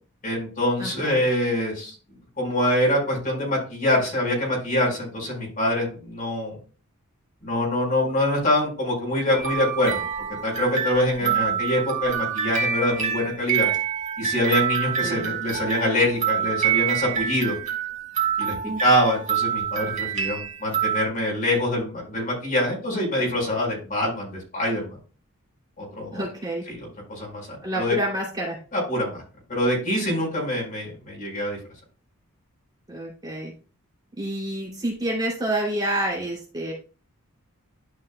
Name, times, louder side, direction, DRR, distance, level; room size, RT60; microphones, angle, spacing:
voice 1, 0.2-2.0 2.4-6.6 7.4-10.0 10.4-13.7 14.2-17.5 18.4-24.9 25.8-26.2 26.7-26.8 27.1-28.0 28.7-29.2 29.5-31.6, left 1 dB, 40° left, -2 dB, 4.5 m, -24 dB
voice 2, 0.8-1.2 11.2-11.6 15.0-15.2 18.6-18.8 26.1-26.6 27.6-28.6 32.9-33.5 34.2-36.7, right 1 dB, 20° right, -4 dB, 2.7 m, -28 dB
sound 1, 9.3-21.0, right 8 dB, 35° right, 1.8 m, -26 dB
12.0 x 5.5 x 2.2 m, 0.36 s
head